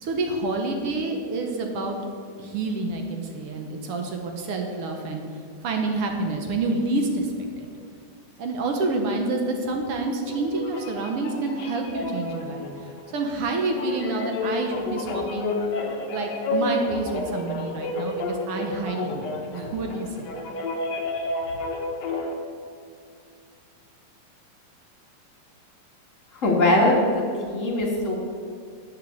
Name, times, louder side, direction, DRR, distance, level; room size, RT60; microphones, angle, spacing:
voice 1, 0.0-2.0 2.4-5.2 5.6-7.3 7.6-7.7 8.4-12.7 13.1-15.5 16.1-20.3, right 3 dB, 65° right, 3 dB, 1.7 m, -28 dB
sound 1, 10.2-22.3, left 2 dB, 70° left, 0.9 m, -31 dB
voice 2, 26.4-28.2, left 1 dB, 35° left, -2 dB, 1.4 m, -21 dB
10.5 x 6.0 x 7.8 m, 2.2 s
omnidirectional pair, 3.4 m